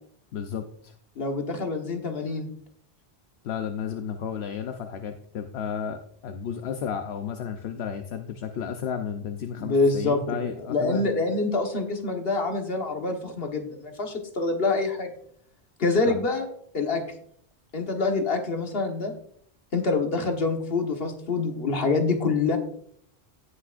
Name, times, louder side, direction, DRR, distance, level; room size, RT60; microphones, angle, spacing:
voice 1, 0.3-0.9 3.4-11.0 16.0-16.1, left 7 dB, 80° left, 6 dB, 0.9 m, -33 dB
voice 2, 1.2-2.5 9.6-15.1 15.8-16.5 16.7-17.0 17.7-19.1 19.7-22.6, left 3 dB, 65° left, 3 dB, 1.5 m, -26 dB
17.5 x 5.9 x 2.5 m, 0.63 s
omnidirectional pair, 1.1 m